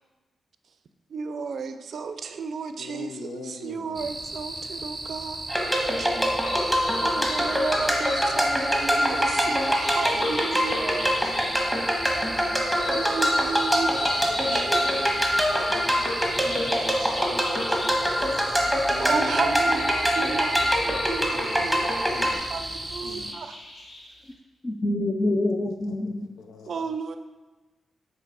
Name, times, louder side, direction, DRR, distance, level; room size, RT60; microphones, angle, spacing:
voice 1, 1.1-5.4 6.0-6.2 7.0-11.2 12.3-12.4 12.9-15.0 18.5-18.7 19.0-23.6 26.7-27.2, right 5 dB, 70° right, 9 dB, 0.4 m, -33 dB
voice 2, 2.8-4.1 10.2-10.4 10.8-11.1 11.4-11.6 14.3-17.0 17.3-17.5 18.9-19.6 21.3-21.9 22.1-22.5 23.0-23.3 25.9-26.9, left 4 dB, 85° left, 6 dB, 0.5 m, -43 dB
sound 1, 3.9-23.3, right 2 dB, 20° right, 0.6 m, -36 dB
sound 2, 5.5-22.3, equal, ahead, 1.3 m, -24 dB
sound 3, 6.4-24.1, left 1 dB, 55° left, 1.5 m, -38 dB
voice 3, 24.6-26.4, left 1 dB, 30° left, 3 dB, 0.5 m, -26 dB
7.5 x 3.3 x 4.6 m, 1.2 s
cardioid pair, 65°, 0 cm